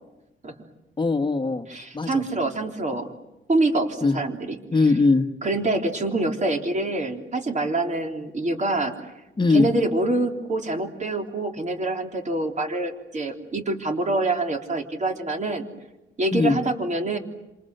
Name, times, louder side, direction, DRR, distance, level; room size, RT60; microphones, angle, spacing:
voice 1, 1.0-1.7 1.9-2.2 4.0-4.2 4.7-5.3 9.4-9.7 16.3-16.6, left 3 dB, 25° left, 8 dB, 1.5 m, -20 dB
voice 2, 1.7-3.1 3.5-4.6 5.4-8.9 9.5-15.6 16.2-17.2, right 2 dB, 35° right, 4 dB, 3.5 m, -26 dB
27.5 x 27.0 x 7.9 m, 0.97 s
wide cardioid pair, 125°, 20 cm